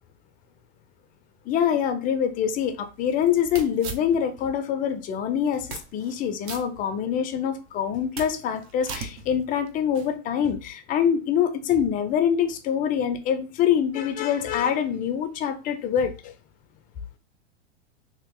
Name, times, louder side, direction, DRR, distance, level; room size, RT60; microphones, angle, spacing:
voice 1, 1.5-16.3, left 8 dB, 25° left, 0.5 m, -25 dB
sound 1, 2.3-4.5 5.0-5.1 5.5-6.2 6.4-7.4 7.8-10.1, right 5 dB, 40° right, 0.8 m, -40 dB
2.9 x 2.8 x 3.7 m
hypercardioid pair, 125°, 34 cm